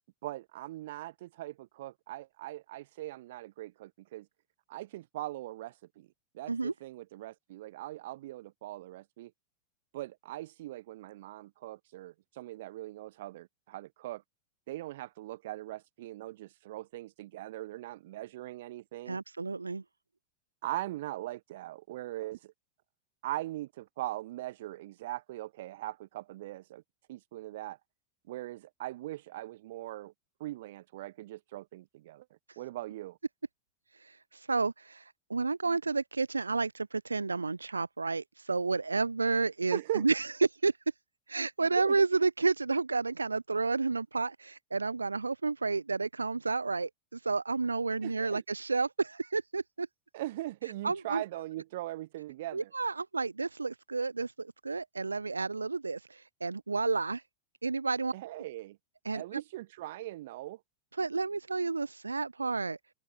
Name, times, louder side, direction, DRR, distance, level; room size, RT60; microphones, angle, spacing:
voice 1, 0.2-4.3 4.7-6.1 6.3-9.3 9.9-14.2 14.7-19.2 20.6-22.5 23.2-26.8 27.1-27.8 28.3-30.1 30.4-32.2 32.6-33.2 39.7-40.1 41.8-41.9 48.0-48.4 50.1-52.7 58.1-58.8 59.1-60.6, right 16 dB, 55° right, 3.2 m, -40 dB
voice 2, 19.1-19.8 34.0-40.3 40.6-40.7 41.3-49.9 50.8-51.2 52.5-57.2 57.6-58.1 59.1-59.4 61.0-62.8, right 4 dB, 80° right, 2.2 m, -31 dB
figure-of-eight pair, 90°, 0 cm